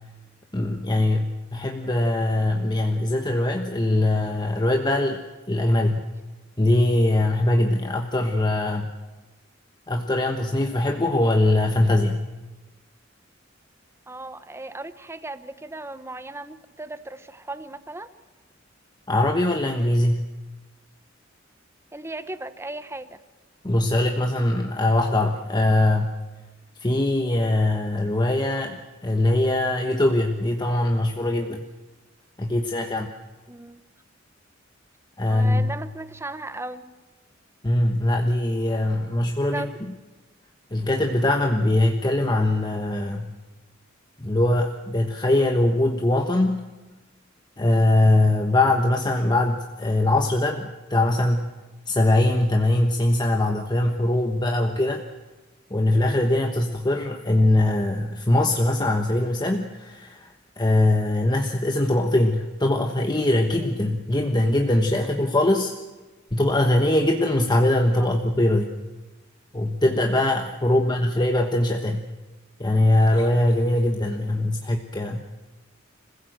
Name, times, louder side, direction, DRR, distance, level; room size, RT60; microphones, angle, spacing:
voice 1, 0.5-5.2 5.5-6.0 6.6-8.9 9.9-12.2 19.1-20.3 23.6-26.1 26.8-31.6 32.4-33.1 35.2-35.7 37.6-39.7 40.7-43.3 44.2-46.6 47.6-51.5 51.9-55.0 55.7-60.3 60.6-65.7 66.3-68.8 69.5-72.0 72.6-75.2, left 1 dB, 20° left, 3 dB, 1.2 m, -22 dB
voice 2, 14.1-18.1 21.9-23.2 28.5-28.7 33.5-33.8 35.2-36.8 39.5-39.7 68.0-68.1 70.6-71.1, right 2 dB, 15° right, 12 dB, 0.9 m, -36 dB
26.0 x 16.0 x 7.8 m, 1.2 s
head